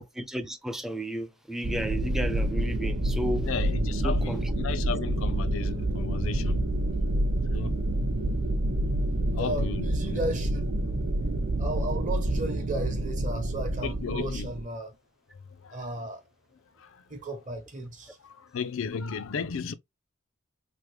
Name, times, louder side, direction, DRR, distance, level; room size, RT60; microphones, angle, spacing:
voice 1, 0.0-3.5 4.0-4.4 4.9-5.0, equal, ahead, 0.3 m, -33 dB
sound 1, 1.6-14.6, right 1 dB, 75° right, 0.8 m, -28 dB
voice 2, 3.4-7.0 7.5-7.9 9.3-10.3 13.8-14.5 15.6-15.9 16.8-17.1 18.2-19.7, left 5 dB, 70° left, 0.4 m, -35 dB
voice 3, 9.3-10.7 11.6-15.0 15.7-16.2 17.1-18.2, right 1 dB, 35° right, 0.8 m, -34 dB
3.4 x 2.1 x 3.1 m
head